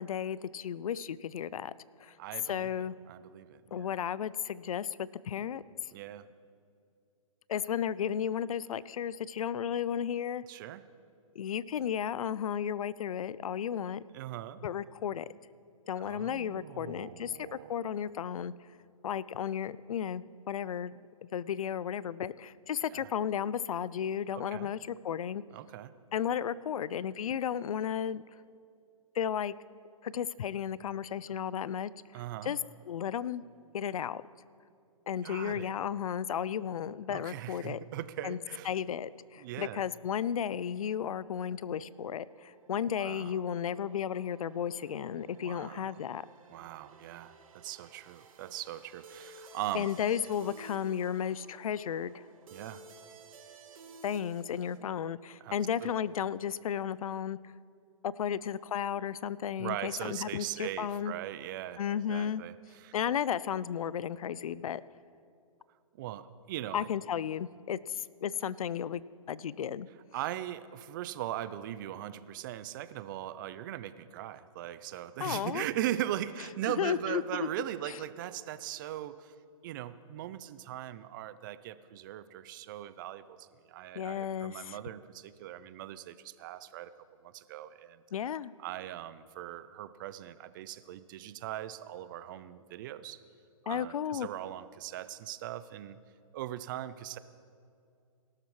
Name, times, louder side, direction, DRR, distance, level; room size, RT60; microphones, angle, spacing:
voice 1, 0.0-1.7 2.0-2.1 2.5-3.0 3.7-5.6 7.5-10.4 11.4-14.0 14.6-15.3 15.9-18.5 19.0-20.9 21.3-25.4 26.1-28.2 29.2-29.5 30.0-31.9 32.4-32.6 32.9-33.4 33.7-34.2 35.1-37.8 38.2-38.4 38.7-46.2 49.7-52.2 54.0-57.4 58.0-61.1 61.8-62.4 62.9-64.8 66.7-69.0 69.3-69.9 75.2-75.6 76.8-77.5 84.0-84.8 88.1-88.5 93.7-94.3, left 9 dB, 70° left, 19 dB, 0.4 m, -34 dB
voice 2, 2.2-3.9 5.9-6.3 10.5-10.9 14.1-14.6 16.0-17.7 22.9-23.1 24.3-24.7 25.5-25.9 32.1-32.6 35.2-35.8 37.1-38.7 39.4-39.8 42.9-43.4 45.4-45.9 46.5-49.9 52.5-52.8 55.4-55.5 55.8-56.0 59.6-61.8 62.1-62.9 65.9-66.9 70.1-79.3 79.6-86.9 87.2-88.0 88.6-93.2 93.6-96.0 96.3-97.2, right 13 dB, 35° right, 15 dB, 0.5 m, -40 dB
sound 1, 39.1-54.8, right 3 dB, 70° right, 1.4 m, -55 dB
18.0 x 12.5 x 3.2 m, 2.4 s
hypercardioid pair, 140°, 18 cm